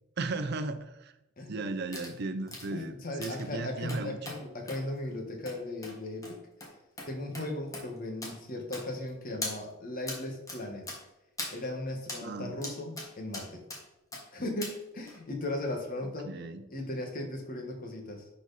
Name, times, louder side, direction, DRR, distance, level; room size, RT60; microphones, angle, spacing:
voice 1, 0.2-1.1 1.5-4.2 12.2-12.5 16.3-16.7, right 3 dB, 50° right, 10 dB, 0.5 m, -35 dB
sound 1, 1.9-2.1 2.5-2.7 3.2-3.4 3.9-4.4 4.7-4.8 5.5-5.6 5.8-5.9 6.2-6.3 6.6-6.7 7.0-7.1 7.3-7.5 7.7-7.9 8.2-8.3 8.7-9.1 9.4-9.6 10.1-10.2 10.5-10.6 10.9-11.0 11.4-11.5 12.1-12.2 12.6-13.1 13.3-13.8 14.1-14.2 14.6-14.7 15.1-15.2, left 2 dB, 15° left, 1.6 m, -39 dB
voice 2, 2.7-6.4 7.1-10.9 11.5-13.7 14.3-16.3 16.7-18.3, left 1 dB, 40° left, 3 dB, 1.5 m, -37 dB
10.5 x 4.4 x 4.1 m, 0.90 s
head